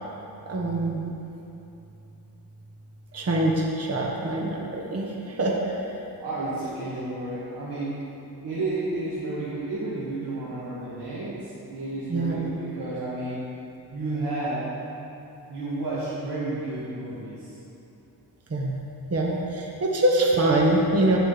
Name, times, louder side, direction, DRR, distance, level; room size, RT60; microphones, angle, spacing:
voice 1, 0.5-1.1 3.1-5.1 5.4-5.5 12.1-12.4 18.5-18.7 19.1-21.2, right 1 dB, 40° right, -2 dB, 1.1 m, -24 dB
voice 2, 6.2-8.0 8.4-13.4 13.9-14.7 15.5-17.6, right 2 dB, 80° right, -10 dB, 1.8 m, -31 dB
14.5 x 5.0 x 4.0 m, 2.9 s
cardioid pair, 90°, 39 cm